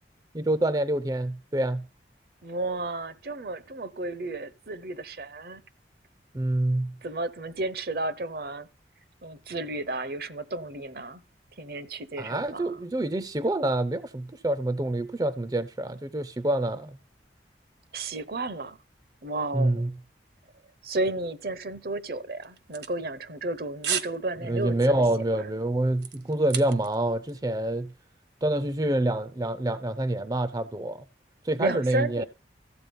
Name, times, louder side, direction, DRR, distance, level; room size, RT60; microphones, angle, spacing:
voice 1, 0.3-1.8 6.3-6.9 12.2-17.0 19.5-19.9 24.4-27.9 28.4-31.0 31.4-32.2, right 1 dB, 20° right, 0.5 m, -27 dB
voice 2, 2.4-5.6 7.0-8.7 9.2-11.2 11.6-12.8 17.9-18.8 19.2-19.8 20.8-24.8 25.3-25.5 31.6-32.2, right 2 dB, 55° right, 0.8 m, -32 dB
sound 1, 22.4-23.5 23.8-24.2 24.5-24.8 25.2-27.0 27.3-27.4, right 8 dB, 75° right, 1.3 m, -33 dB
14.5 x 8.3 x 5.3 m
head